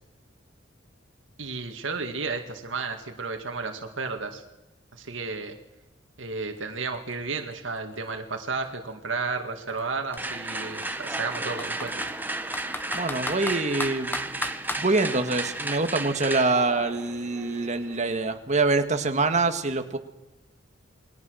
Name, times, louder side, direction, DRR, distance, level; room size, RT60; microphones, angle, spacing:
voice 1, 1.4-4.4 4.9-5.6 6.2-11.9, right 4 dB, 80° right, 4 dB, 2.1 m, -32 dB
Computer keyboard, 6.6-6.7 6.9-8.9 9.7-9.8 10.1-10.2 10.8-12.1 12.5-14.9, left 2 dB, 10° left, 1.2 m, -35 dB
sound 1, 10.2-18.1, right 2 dB, 10° right, 1.4 m, -34 dB
voice 2, 12.9-14.4 14.8-20.0, right 3 dB, 40° right, 7 dB, 1.9 m, -25 dB
28.5 x 21.5 x 6.5 m, 0.97 s
head